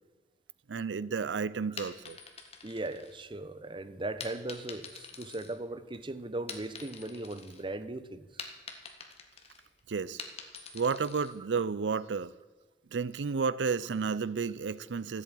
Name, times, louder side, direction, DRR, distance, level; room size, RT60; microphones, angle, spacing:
voice 1, 0.7-2.2 9.9-10.2 10.7-12.3 12.9-15.2, right 5 dB, 90° right, 0.5 m, -32 dB
sound 1, 1.6-3.6 4.2-6.0 6.3-7.6 8.0-11.4, left 5 dB, 35° left, 1.7 m, -46 dB
voice 2, 2.6-8.3, right 2 dB, 30° right, 0.8 m, -38 dB
14.5 x 8.1 x 9.1 m
head